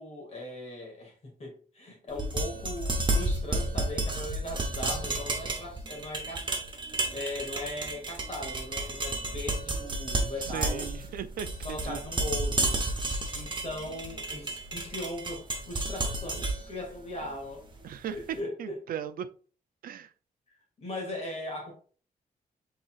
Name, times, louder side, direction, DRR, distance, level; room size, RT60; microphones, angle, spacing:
voice 1, 0.0-6.6 7.1-10.9 11.6-12.8 13.3-17.6 18.1-18.8 20.8-21.7, left 1 dB, 45° left, 2.0 m, -39 dB
sound 1, 2.1-18.2, right 2 dB, 30° right, 0.9 m, -32 dB
voice 2, 10.4-12.0 17.8-18.2 18.6-19.3 19.8-20.1, right 9 dB, 75° right, 0.4 m, -37 dB
5.4 x 3.9 x 2.4 m
wide cardioid pair, 140°, 15 cm